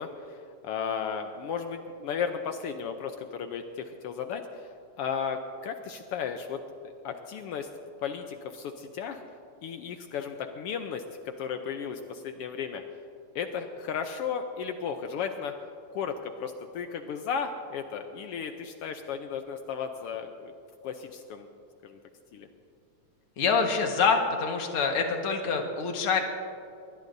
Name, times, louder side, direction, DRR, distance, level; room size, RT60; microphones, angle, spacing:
voice 1, 0.0-7.7 8.0-9.2 9.6-12.8 13.3-15.6 15.9-20.5 20.8-21.5 21.8-22.0 22.3-22.5, left 6 dB, 80° left, 6 dB, 1.3 m, -35 dB
voice 2, 23.4-26.2, left 5 dB, 55° left, 3 dB, 2.2 m, -26 dB
22.5 x 19.5 x 2.7 m, 2.5 s
omnidirectional pair, 3.4 m